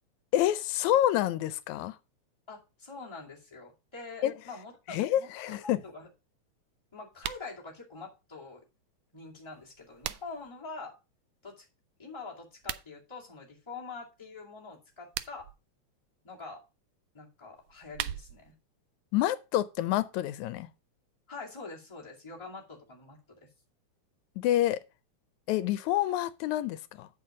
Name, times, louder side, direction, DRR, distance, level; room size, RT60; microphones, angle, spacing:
voice 1, 0.3-2.0 4.2-4.3 4.9-5.8 19.1-20.7 24.4-24.8 25.5-27.1, left 13 dB, 85° left, 2.0 m, -28 dB
voice 2, 2.5-6.1 6.9-8.6 9.1-10.9 11.4-11.6 12.0-15.5 16.2-16.6 17.1-18.5 21.3-23.5, left 4 dB, 10° left, 2.1 m, -45 dB
sound 1, 7.1-7.5 9.5-10.5 12.5-12.9 14.9-15.6 17.6-18.5, right 13 dB, 80° right, 1.6 m, -39 dB
8.4 x 6.1 x 4.8 m
omnidirectional pair, 3.3 m